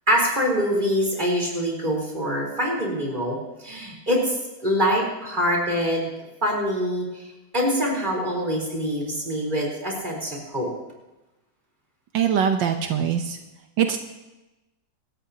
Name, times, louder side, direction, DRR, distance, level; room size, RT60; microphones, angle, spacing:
voice 1, 0.1-3.4 3.6-6.1 6.4-7.1 7.5-10.7, equal, 25° right, -2 dB, 4.1 m, -24 dB
voice 2, 12.1-13.4 13.8-14.0, right 8 dB, 80° right, 5 dB, 1.6 m, -22 dB
26.0 x 13.5 x 2.9 m, 1.0 s
omnidirectional pair, 2.0 m